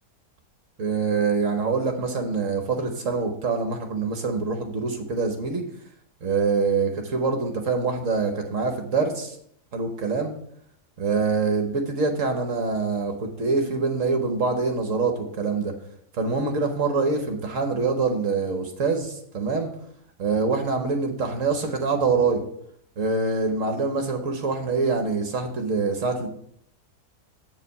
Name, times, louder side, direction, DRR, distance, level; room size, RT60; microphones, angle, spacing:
voice 1, 0.8-5.6 6.2-9.4 9.7-10.3 11.0-15.7 16.1-19.7 20.2-22.4 23.0-26.3, right 4 dB, 55° right, 4 dB, 1.3 m, -25 dB
8.0 x 4.9 x 5.5 m, 0.67 s
omnidirectional pair, 1.7 m